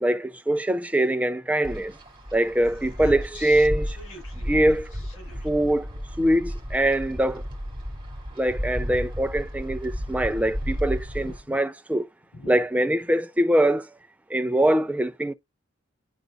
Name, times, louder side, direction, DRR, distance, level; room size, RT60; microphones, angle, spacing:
voice 1, 0.0-1.9 2.3-3.9 4.5-4.8 5.4-5.9 6.2-7.4 8.4-12.1 12.5-13.8 14.3-15.3, right 1 dB, 5° right, 0.4 m, -23 dB
Wind, 1.6-11.4, equal, 25° right, 2.4 m, -33 dB
voice 2, 2.7-3.7 3.9-4.5 4.9-5.5 11.2-11.6 12.3-12.6, left 2 dB, 80° left, 5.0 m, -45 dB
10.5 x 3.8 x 2.4 m
head